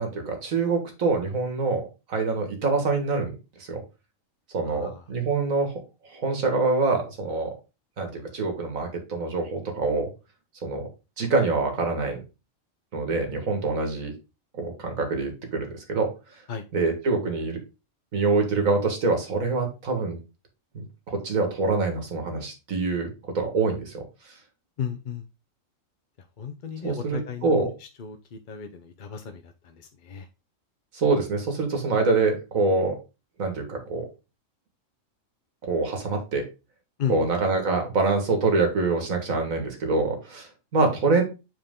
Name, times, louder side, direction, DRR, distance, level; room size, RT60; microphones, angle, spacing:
voice 1, 0.0-3.8 4.5-7.5 8.0-10.1 10.6-10.9 11.2-12.2 12.9-14.1 14.5-16.4 16.7-17.6 18.1-20.2 20.7-24.4 26.8-27.7 30.9-33.0 33.4-34.1 35.7-36.4 37.1-41.2, right 3 dB, 85° right, 4 dB, 2.0 m, -25 dB
voice 2, 4.6-5.0 16.5-16.6 24.8-25.2 26.4-27.5 28.0-30.3 37.0-37.3, left 7 dB, 50° left, 5 dB, 0.7 m, -34 dB
7.6 x 4.4 x 3.6 m, 0.28 s
omnidirectional pair, 1.4 m